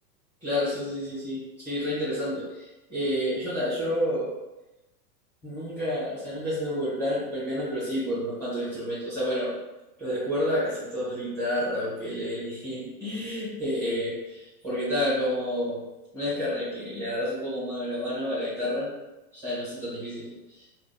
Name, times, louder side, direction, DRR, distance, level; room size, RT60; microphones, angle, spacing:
voice 1, 0.4-4.3 5.4-9.5 10.0-15.8 16.1-18.9 19.3-20.3 20.6-20.7, equal, 5° left, -11 dB, 0.9 m, -29 dB
2.5 x 2.1 x 2.6 m, 1.0 s
hypercardioid pair, 135°, 48 cm